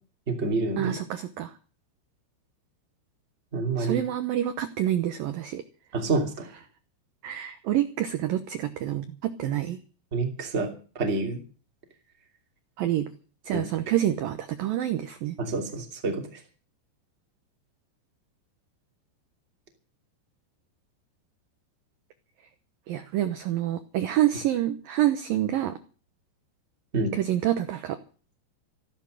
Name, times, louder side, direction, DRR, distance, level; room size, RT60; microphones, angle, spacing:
voice 1, 0.3-1.0 3.5-4.0 5.9-6.3 10.1-10.7 10.9-11.4 13.5-13.7 15.4-16.2 26.9-27.1, right 3 dB, 20° right, 3 dB, 2.2 m, -27 dB
voice 2, 0.8-1.5 3.8-5.6 7.2-9.8 12.8-13.0 13.5-15.4 22.9-25.7 27.1-28.0, right 12 dB, 70° right, 9 dB, 2.2 m, -27 dB
14.5 x 12.5 x 6.5 m, 0.38 s
omnidirectional pair, 5.3 m